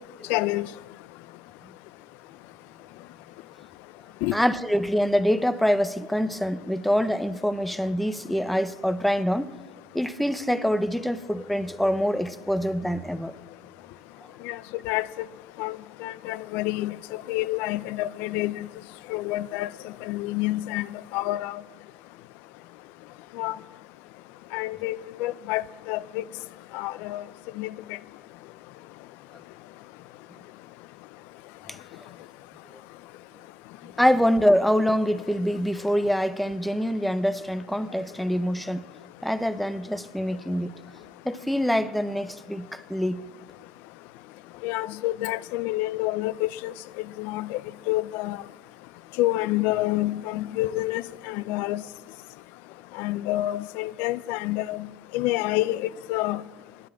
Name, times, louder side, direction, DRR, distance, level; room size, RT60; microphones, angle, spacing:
voice 1, 0.3-0.7 4.2-4.3 14.4-14.6 14.8-15.1 15.6-15.8 16.0-17.0 17.3-18.7 19.1-20.9 21.1-21.6 23.4-23.6 24.5-26.2 26.7-27.2 27.6-27.7 44.6-46.7 47.2-47.6 47.9-48.4 49.2-51.8 53.0-54.9 55.1-56.4, left 17 dB, 70° left, 0.5 m, -28 dB
voice 2, 4.3-9.5 9.9-13.3 31.7-31.8 34.0-38.9 39.2-40.7 41.2-43.2, equal, ahead, 0.6 m, -25 dB
10.0 x 9.4 x 8.5 m
supercardioid pair, 115°, 4 cm